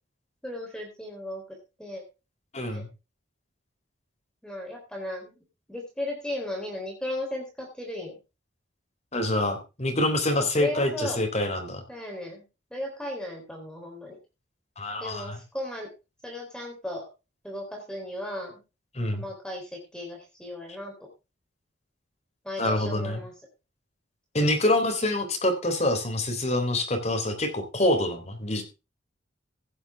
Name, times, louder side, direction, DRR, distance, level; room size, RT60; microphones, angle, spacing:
voice 1, 0.4-2.0 2.7-2.8 4.4-5.3 5.7-8.1 10.6-11.2 11.9-12.4 12.7-14.2 15.0-15.9 16.2-17.1 17.4-18.6 19.1-21.1 22.4-23.3 24.4-24.5, left 1 dB, 5° left, 1 dB, 3.7 m, -36 dB
voice 2, 2.5-2.9 9.1-11.8 14.8-15.4 18.9-19.2 22.6-23.2 24.3-28.6, left 1 dB, 35° left, 5 dB, 3.6 m, -26 dB
15.5 x 9.7 x 3.6 m, 0.29 s
head